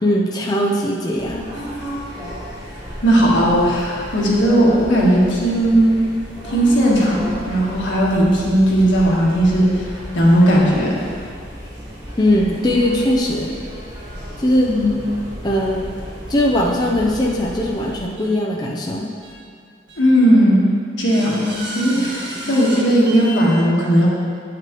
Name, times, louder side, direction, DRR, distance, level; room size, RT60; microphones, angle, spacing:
voice 1, 0.0-1.4 12.2-13.5 14.4-14.7 15.4-15.9 16.3-19.1 21.9-22.1 22.4-22.6, left 1 dB, 20° left, -2 dB, 0.5 m, -19 dB
sound 1, 1.1-18.0, equal, 20° right, 1.4 m, -34 dB
voice 2, 3.0-5.9 6.4-11.0 14.6-15.0 20.0-20.7 21.0-24.1, equal, 85° left, -5 dB, 1.6 m, -16 dB
sound 2, 16.5-16.7 17.1-17.2 18.2-18.3 19.2-19.3 19.9-20.0 21.0-23.5, right 1 dB, 70° right, 1.8 m, -33 dB
9.2 x 5.9 x 3.0 m, 2.2 s
head